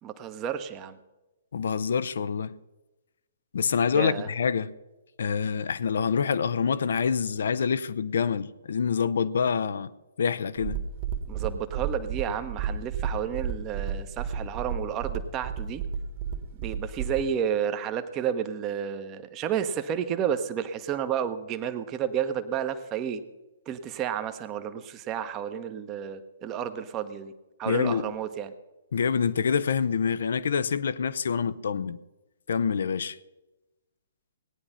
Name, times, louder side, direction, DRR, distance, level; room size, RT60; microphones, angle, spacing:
voice 1, 0.0-1.0 3.9-4.3 11.3-15.8 16.6-23.2 23.7-27.3 27.6-28.5, right 9 dB, 25° right, 1.0 m, -31 dB
voice 2, 1.5-2.5 3.5-4.7 5.2-9.9 10.2-10.8 27.7-28.1 28.9-32.0 32.5-33.2, left 6 dB, 60° left, 0.6 m, -26 dB
sound 1, 10.6-17.3, right 7 dB, 40° right, 1.8 m, -32 dB
17.5 x 9.8 x 5.7 m
figure-of-eight pair, 125°, 0 cm